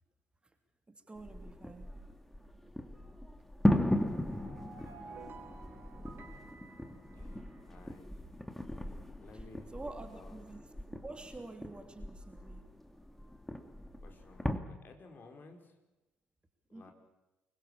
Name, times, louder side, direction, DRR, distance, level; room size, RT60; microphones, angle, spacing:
voice 1, 0.9-1.9 2.6-2.7 9.3-9.4 9.7-10.6 11.0-12.7 16.7-16.9, right 2 dB, 20° right, 6 dB, 3.0 m, -47 dB
sound 1, 1.2-14.6, left 1 dB, 5° left, 2.2 m, -37 dB
sound 2, 3.8-7.8, right 4 dB, 45° right, 3.5 m, -53 dB
voice 2, 7.1-8.1 9.2-10.4 14.0-15.7 16.7-16.9, left 3 dB, 40° left, 4 dB, 4.5 m, -56 dB
25.0 x 23.0 x 7.2 m, 1.1 s
figure-of-eight pair, 45°, 5 cm